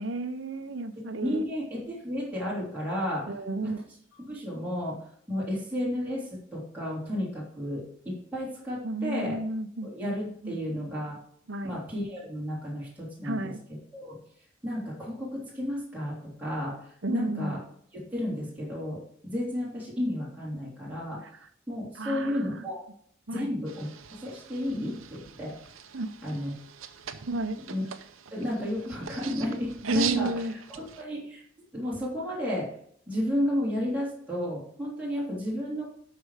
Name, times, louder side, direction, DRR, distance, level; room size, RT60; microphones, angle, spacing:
voice 1, 0.0-1.4 3.3-3.8 8.8-10.6 11.5-11.8 13.2-13.6 17.0-17.6 22.0-22.6 23.3-23.5 25.9-26.1 27.3-27.6 29.8-30.5, right 2 dB, 65° right, 8 dB, 0.9 m, -32 dB
voice 2, 1.2-3.3 3.6-3.7 4.2-5.0 5.3-9.4 9.8-11.2 11.6-13.5 13.9-14.1 14.6-17.6 17.9-21.2 21.7-22.8 23.3-25.5 26.2-26.5 27.7-27.8 28.3-30.3 30.7-31.4 31.7-32.7 33.1-35.9, equal, 10° right, -7 dB, 3.3 m, -32 dB
sound 1, 23.7-31.0, right 9 dB, 90° right, 0.8 m, -41 dB
12.0 x 4.8 x 5.0 m, 0.64 s
head